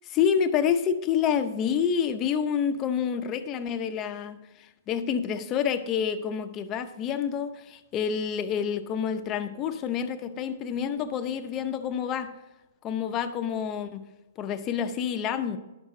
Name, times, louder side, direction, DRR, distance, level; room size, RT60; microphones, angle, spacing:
voice 1, 0.1-12.3 12.8-14.0 14.4-15.6, left 7 dB, 25° left, 9 dB, 0.6 m, -28 dB
11.0 x 6.4 x 3.8 m, 1.0 s
hypercardioid pair, 155°, 0 cm